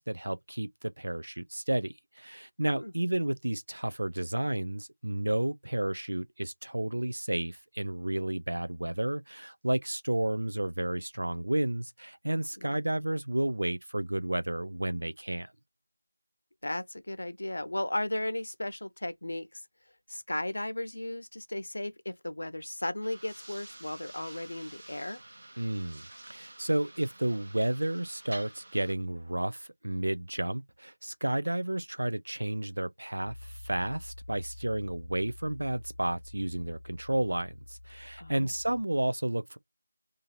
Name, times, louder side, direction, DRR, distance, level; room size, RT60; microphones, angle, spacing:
voice 1, 0.0-15.5 25.6-39.6, right 1 dB, 55° right, 0.4 m, -32 dB
voice 2, 16.6-19.7 20.1-25.2 38.2-38.5, left 1 dB, 55° left, 0.7 m, -35 dB
sound 1, 23.0-29.0, right 2 dB, 40° right, 0.8 m, -49 dB
Piano, 33.2-38.8, left 2 dB, 20° left, 0.5 m, -48 dB
3.7 x 2.6 x 4.3 m
figure-of-eight pair, 170°, 0 cm